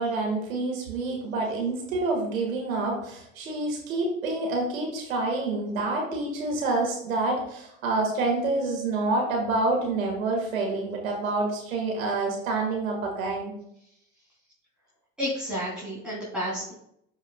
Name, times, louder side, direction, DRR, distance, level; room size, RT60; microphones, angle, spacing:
voice 1, 0.0-13.5, right 2 dB, 80° right, 0 dB, 1.7 m, -27 dB
voice 2, 15.2-16.7, equal, ahead, -7 dB, 2.8 m, -31 dB
12.0 x 4.8 x 2.3 m, 0.74 s
figure-of-eight pair, 75°, 41 cm